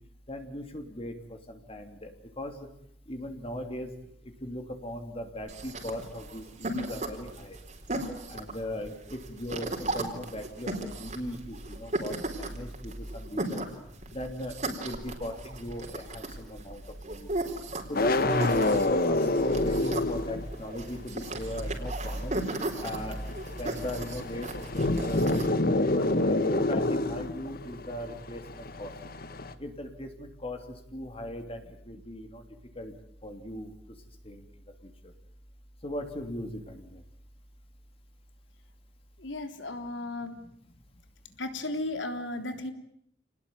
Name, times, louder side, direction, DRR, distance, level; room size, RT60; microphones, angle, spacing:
voice 1, 0.3-2.1 2.4-2.5 3.1-3.9 4.4-7.6 8.3-13.7 14.1-16.8 17.1-17.3 17.9-22.4 22.8-23.2 23.6-25.3 25.8-28.9 29.6-30.6 30.9-32.4 32.8-32.9 33.2-33.7 34.2-34.4 35.8-37.0, equal, 30° left, 5 dB, 3.1 m, -38 dB
sound 1, 5.5-25.5, right 2 dB, 40° right, 4.2 m, -37 dB
sound 2, 17.9-20.8 21.1-29.5, left 2 dB, 55° left, 1.7 m, -28 dB
voice 2, 39.2-40.4 41.4-42.7, left 2 dB, 90° left, 7 dB, 3.5 m, -35 dB
29.0 x 20.0 x 9.3 m, 0.71 s
head